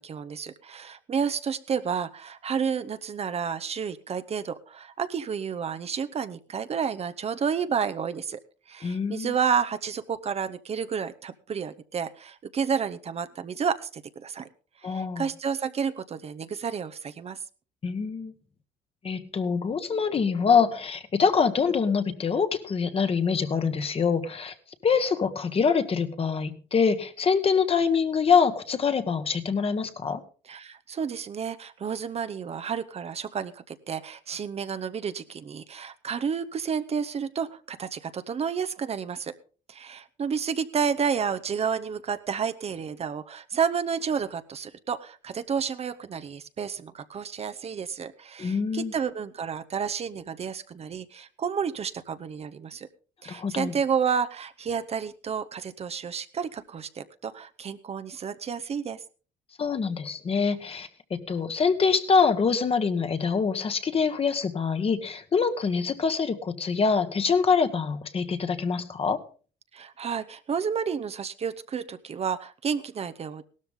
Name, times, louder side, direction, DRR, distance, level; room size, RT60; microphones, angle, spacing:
voice 1, 0.0-8.4 8.7-14.5 14.8-17.4 30.5-39.4 39.7-52.9 53.2-59.0 69.7-73.4, right 6 dB, 35° right, 10 dB, 0.8 m, -31 dB
voice 2, 8.8-9.3 14.8-15.3 17.8-18.3 19.0-24.5 24.8-30.2 48.4-48.9 53.2-53.7 59.6-69.2, left 5 dB, 35° left, 9 dB, 1.4 m, -25 dB
17.0 x 13.0 x 3.7 m, 0.39 s
cardioid pair, 110°, 17 cm